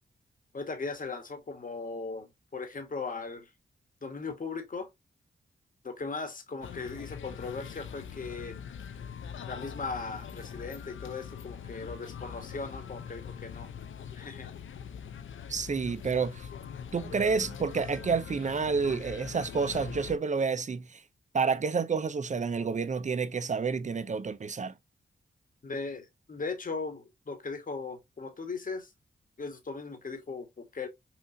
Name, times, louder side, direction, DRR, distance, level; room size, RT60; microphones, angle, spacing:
voice 1, 0.5-2.3 2.5-3.5 4.0-4.9 5.8-8.6 9.5-13.7 14.1-14.5 25.6-28.9 29.4-30.9, left 4 dB, 45° left, 1.3 m, -38 dB
sound 1, 6.6-20.2, left 7 dB, 80° left, 0.5 m, -43 dB
voice 2, 15.5-16.5 16.9-21.0 21.3-24.7, right 5 dB, 40° right, 0.6 m, -29 dB
5.9 x 2.5 x 2.7 m
cardioid pair, 60°, 20 cm